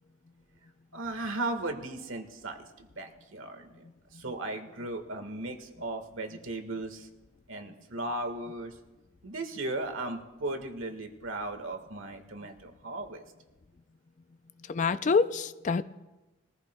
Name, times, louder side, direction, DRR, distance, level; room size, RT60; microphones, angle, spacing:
voice 1, 0.9-7.1 7.5-8.8 9.2-13.2, right 2 dB, 75° right, 5 dB, 1.5 m, -36 dB
voice 2, 14.7-15.8, left 4 dB, 35° left, 13 dB, 0.4 m, -26 dB
22.0 x 14.5 x 2.2 m, 1.1 s
head